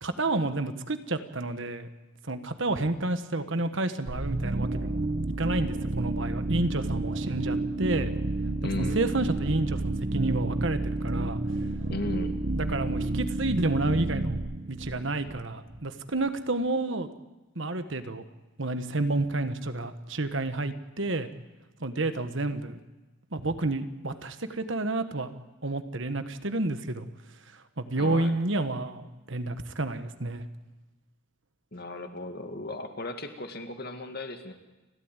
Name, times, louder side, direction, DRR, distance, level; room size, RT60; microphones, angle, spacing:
voice 1, 0.0-1.9 2.2-5.0 5.4-8.1 8.6-11.4 12.6-17.1 17.5-18.2 18.6-21.3 21.8-22.8 23.3-25.3 25.6-27.1 27.5-30.4, right 2 dB, 60° right, 10 dB, 1.4 m, -30 dB
sound 1, 4.1-15.8, right 2 dB, 40° right, 0.9 m, -30 dB
voice 2, 8.6-9.0 11.9-12.4 28.0-28.4 31.7-34.5, left 1 dB, 45° left, 6 dB, 2.1 m, -35 dB
30.0 x 12.5 x 9.0 m, 1.1 s
head